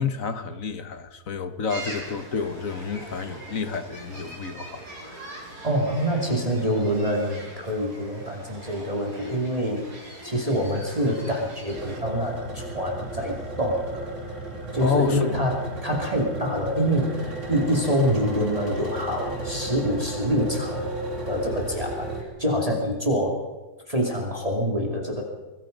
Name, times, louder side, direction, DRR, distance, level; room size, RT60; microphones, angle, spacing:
voice 1, 0.0-5.5 14.8-15.4, left 5 dB, 55° left, 1.7 m, -30 dB
sound 1, 1.7-12.0, right 1 dB, 85° right, 5.7 m, -42 dB
voice 2, 5.6-9.9 10.2-14.1 14.7-20.9 21.3-23.4 23.9-25.2, equal, 20° right, 2.8 m, -26 dB
sound 2, 11.7-22.2, right 2 dB, 50° right, 3.5 m, -34 dB
25.5 x 19.5 x 5.4 m
omnidirectional pair, 1.7 m